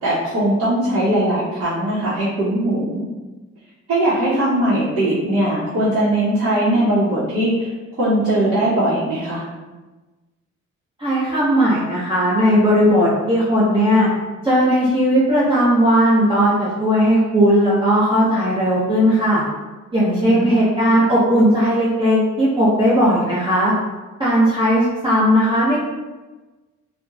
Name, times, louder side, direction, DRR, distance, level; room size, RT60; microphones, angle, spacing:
voice 1, 0.0-3.0 3.9-7.7 8.0-9.4 20.0-20.6, right 1 dB, 50° right, -10 dB, 0.8 m, -20 dB
voice 2, 11.0-14.1 14.4-19.4 19.9-23.7 24.2-25.8, equal, 15° right, -9 dB, 0.8 m, -17 dB
2.9 x 2.1 x 2.4 m, 1.2 s
cardioid pair, 90°, 30 cm